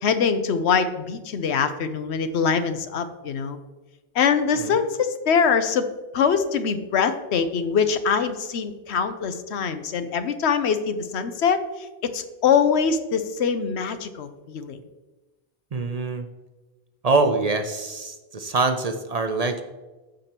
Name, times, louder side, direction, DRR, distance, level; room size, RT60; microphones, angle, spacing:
voice 1, 0.0-3.6 4.1-5.9 6.1-11.6 12.0-14.8, left 6 dB, 90° left, 10 dB, 1.0 m, -23 dB
voice 2, 15.7-16.3 17.0-19.6, right 3 dB, 45° right, 7 dB, 0.6 m, -24 dB
14.5 x 5.0 x 2.9 m, 1.2 s
omnidirectional pair, 1.1 m